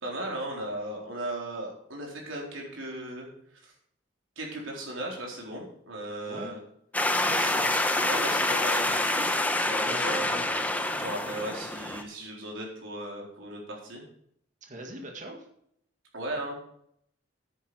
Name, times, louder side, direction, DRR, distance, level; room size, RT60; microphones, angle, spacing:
voice 1, 0.0-3.7 4.4-6.6 7.3-7.5 8.0-10.4 11.0-14.0 16.1-16.6, right 1 dB, 75° right, -1 dB, 4.0 m, -37 dB
voice 2, 6.3-6.6 7.1-7.9 9.8-10.5 14.7-15.5, right 1 dB, 40° right, 2 dB, 1.9 m, -41 dB
sound 1, 6.9-12.0, left 2 dB, 10° left, 0.8 m, -27 dB
10.0 x 9.4 x 4.9 m, 0.69 s
head